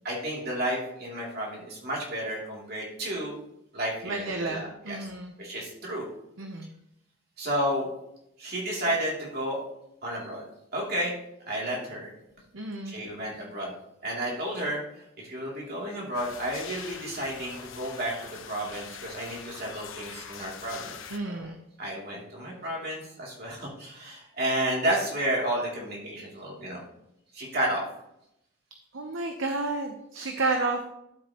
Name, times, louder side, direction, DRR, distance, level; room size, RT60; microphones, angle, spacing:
voice 1, 0.0-3.3 3.7-5.0 5.4-6.0 7.4-7.9 8.4-9.6 10.0-10.4 10.7-11.1 11.5-12.1 12.8-13.7 14.0-14.8 15.2-20.9 21.3-21.5 21.8-26.8 27.3-27.8, right 1 dB, 50° right, -3 dB, 3.0 m, -31 dB
voice 2, 4.0-5.3 6.4-6.7 12.5-13.0 21.1-21.6 28.9-30.8, right 3 dB, 75° right, 4 dB, 0.9 m, -31 dB
Cave water drops, 16.1-21.2, left 7 dB, 75° left, 1.0 m, -43 dB
12.5 x 7.7 x 3.0 m, 0.83 s
head